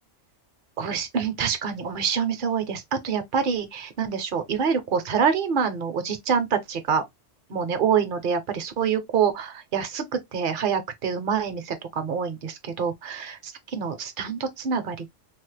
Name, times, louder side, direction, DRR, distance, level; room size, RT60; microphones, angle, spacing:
voice 1, 0.8-7.0 7.5-10.1 10.3-15.1, right 6 dB, 50° right, 0.7 m, -26 dB
3.4 x 2.0 x 3.1 m
omnidirectional pair, 1.3 m